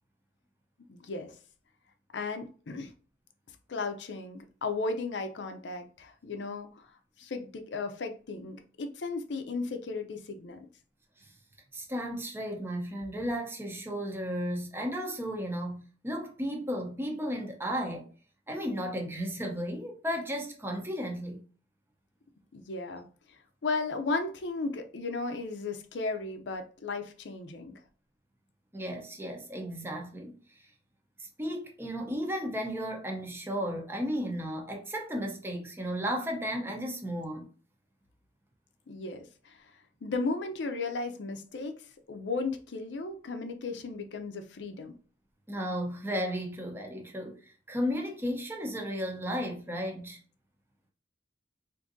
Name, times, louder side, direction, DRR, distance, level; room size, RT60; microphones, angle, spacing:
voice 1, 0.9-1.3 2.1-2.9 3.7-6.9 7.2-10.6 22.5-23.0 23.6-27.8 38.9-39.6 40.0-41.8 42.1-44.9, left 3 dB, 85° left, 0.5 m, -35 dB
voice 2, 11.7-18.0 18.5-21.4 28.7-30.4 31.2-37.5 45.5-50.2, equal, 15° right, 0.6 m, -34 dB
3.7 x 2.6 x 2.5 m
head